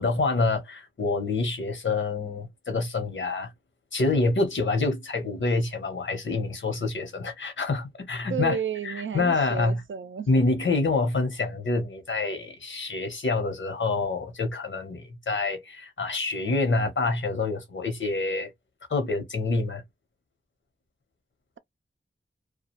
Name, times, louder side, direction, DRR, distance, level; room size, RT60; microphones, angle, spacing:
voice 1, 0.0-3.5 3.9-8.6 8.8-9.8 10.3-18.5 18.9-19.8, left 3 dB, 85° left, 0.9 m, -27 dB
voice 2, 8.3-10.3, right 7 dB, 90° right, 0.4 m, -32 dB
2.4 x 2.2 x 2.9 m
wide cardioid pair, 65°, 19 cm